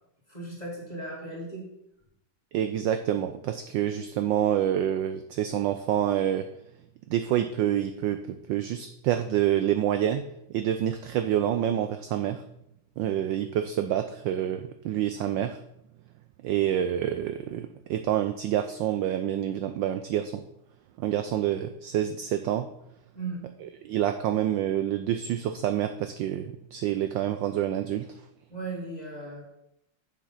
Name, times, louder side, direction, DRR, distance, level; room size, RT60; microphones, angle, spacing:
voice 1, 0.3-1.6 23.1-23.5 28.5-29.4, right 2 dB, 20° left, -3 dB, 2.5 m, -36 dB
voice 2, 2.5-6.5 7.1-10.2 10.5-12.4 13.0-15.6 16.4-20.4 21.0-22.7 23.6-28.1, right 11 dB, 75° right, 8 dB, 1.1 m, -27 dB
7.4 x 7.3 x 5.6 m, 0.79 s
omnidirectional pair, 2.4 m